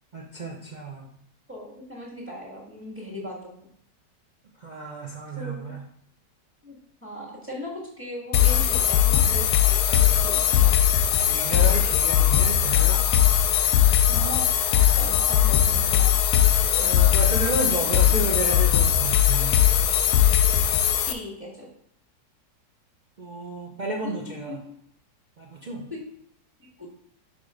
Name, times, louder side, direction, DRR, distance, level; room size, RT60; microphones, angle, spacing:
voice 1, 0.1-1.0 4.6-5.8 11.2-13.0 16.8-19.5 23.2-24.6 25.4-25.9, right 2 dB, 65° right, -1 dB, 0.4 m, -32 dB
voice 2, 1.5-3.5 5.3-5.8 6.6-6.8 7.0-10.7 14.1-14.5 14.9-16.2 21.1-21.7 24.0-24.1 24.5-24.6 25.9-26.0 26.8-26.9, left 1 dB, 5° right, -4 dB, 1.6 m, -38 dB
sound 1, 8.3-21.1, left 10 dB, 70° left, 1.0 m, -20 dB
6.1 x 3.7 x 4.9 m, 0.68 s
omnidirectional pair, 1.9 m